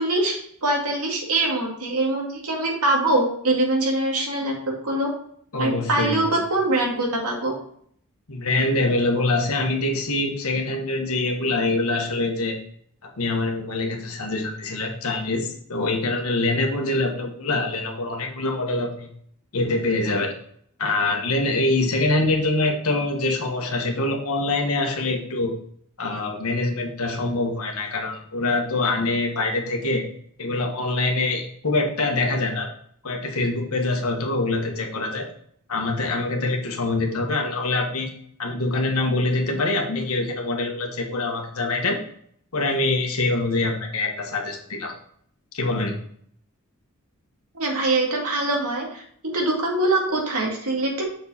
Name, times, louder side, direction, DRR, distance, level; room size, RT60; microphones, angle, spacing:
voice 1, 0.0-4.5 4.8-5.1 5.6-7.5 47.5-51.0, right 2 dB, 85° right, 0 dB, 2.2 m, -23 dB
voice 2, 5.5-6.4 8.3-12.6 13.0-19.1 19.5-20.3 20.8-25.5 26.0-30.0 30.4-32.7 33.0-35.3 35.7-38.1 38.4-42.0 42.5-44.9 45.5-45.9, left 2 dB, 75° left, 2 dB, 1.4 m, -24 dB
6.6 x 4.5 x 4.2 m, 0.63 s
head